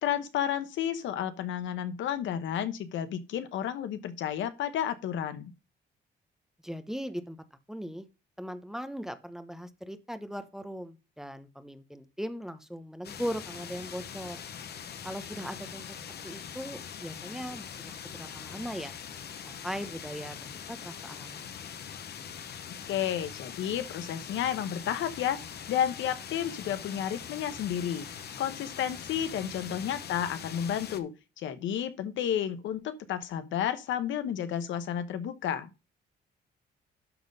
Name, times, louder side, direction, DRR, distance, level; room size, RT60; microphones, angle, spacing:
voice 1, 0.0-5.5 22.9-25.4 25.7-28.1 28.4-35.7, left 9 dB, 85° left, 1.0 m, -31 dB
voice 2, 6.6-7.4 7.7-8.1 8.4-14.4 15.0-18.9 19.4-21.5 29.2-29.4, equal, ahead, 1.0 m, -39 dB
sound 1, 13.0-31.0, left 8 dB, 60° left, 1.0 m, -42 dB
12.0 x 4.0 x 5.3 m
cardioid pair, 110°, 19 cm